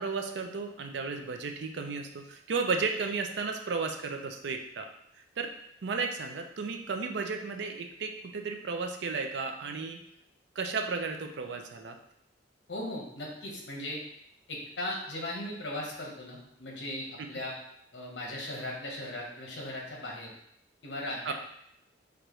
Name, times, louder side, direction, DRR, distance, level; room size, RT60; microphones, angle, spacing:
voice 1, 0.0-4.9 5.4-5.5 5.8-10.0 10.6-12.0 21.2-21.3, right 4 dB, 70° right, 5 dB, 0.4 m, -33 dB
voice 2, 12.7-14.0 14.5-17.5 17.9-20.3 20.8-21.3, left 1 dB, 70° left, -2 dB, 1.0 m, -38 dB
4.5 x 2.5 x 3.0 m, 0.75 s
head